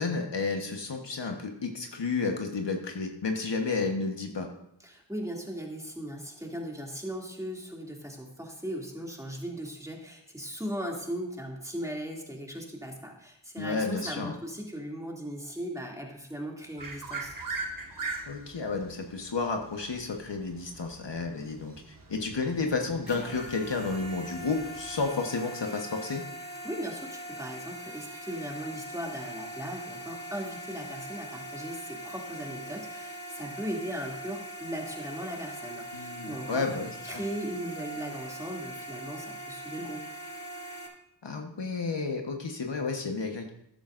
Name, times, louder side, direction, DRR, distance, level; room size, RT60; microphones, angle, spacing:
voice 1, 0.0-4.5 13.6-14.3 18.3-26.2 35.9-36.9 41.2-43.5, left 4 dB, 65° left, 3 dB, 1.4 m, -31 dB
voice 2, 4.8-17.4 26.6-36.8 37.0-40.1, equal, 5° right, -1 dB, 2.6 m, -38 dB
sound 1, 16.8-25.1, right 3 dB, 45° right, 1.7 m, -42 dB
sound 2, 23.0-40.9, right 1 dB, 20° left, 2.6 m, -41 dB
13.5 x 10.0 x 2.6 m, 0.77 s
cardioid pair, 40°, 46 cm